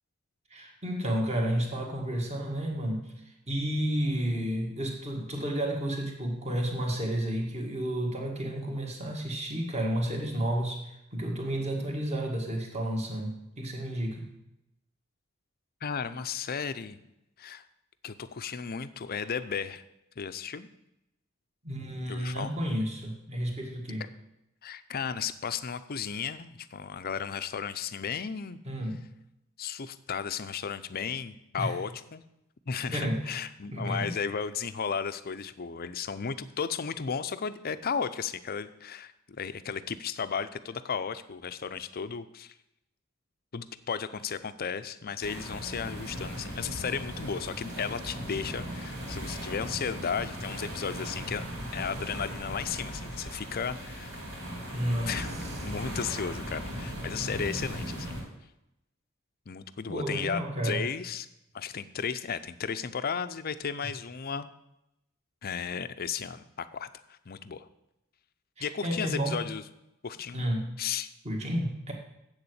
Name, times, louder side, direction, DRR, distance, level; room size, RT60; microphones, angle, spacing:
voice 1, 0.5-14.3 19.1-19.3 21.6-24.0 28.7-29.1 31.6-31.7 32.9-33.3 33.7-34.1 54.7-55.1 55.4-55.6 59.9-60.9 68.6-69.5 70.3-70.8 71.2-71.9, right 1 dB, 30° right, 1 dB, 1.9 m, -31 dB
voice 2, 15.8-17.0 17.4-17.6 18.0-19.8 20.2-20.7 22.1-22.5 24.6-28.6 29.6-32.2 32.7-39.1 39.4-42.5 43.5-51.4 51.7-54.1 55.1-55.3 55.6-58.2 59.5-61.3 61.5-64.5 65.4-67.7 68.6-69.6 70.0-70.4 70.8-71.1, left 6 dB, 45° left, 13 dB, 0.6 m, -34 dB
sound 1, 45.2-58.2, equal, 80° right, 4.0 m, -38 dB
8.0 x 6.9 x 8.0 m, 0.86 s
head